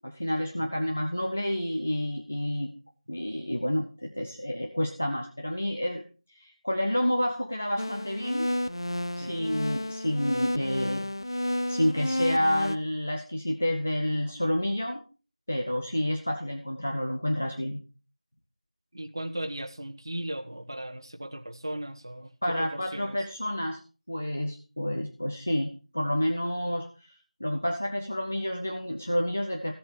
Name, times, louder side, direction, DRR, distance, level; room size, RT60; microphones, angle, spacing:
voice 1, 0.0-2.7 3.1-6.0 6.3-8.5 9.2-11.1 11.7-15.0 15.5-17.8 22.4-23.8 24.1-29.7, left 1 dB, 15° left, 3 dB, 0.5 m, -29 dB
sound 1, 7.8-12.8, left 1 dB, 40° left, 0.8 m, -31 dB
voice 2, 18.9-23.2, right 1 dB, 30° right, 3 dB, 1.1 m, -37 dB
15.5 x 7.7 x 5.4 m, 0.34 s
figure-of-eight pair, 175°, 4 cm